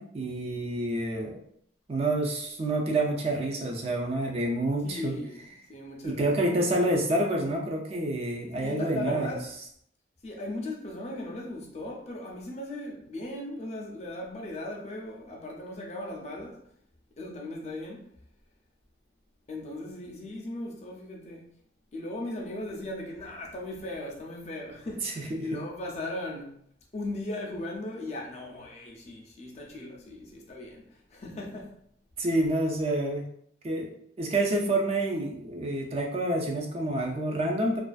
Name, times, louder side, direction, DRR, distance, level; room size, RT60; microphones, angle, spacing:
voice 1, 0.0-1.4 1.9-5.2 6.0-9.3 25.0-25.5 32.2-33.3 33.6-33.9 34.2-37.8, right 1 dB, 35° right, 0.4 m, -28 dB
voice 2, 4.8-5.4 5.7-6.4 8.5-9.5 10.2-16.6 17.2-18.1 19.5-21.5 21.9-26.6 26.9-31.8, left 1 dB, 35° left, 0.5 m, -37 dB
2.4 x 2.3 x 2.3 m
head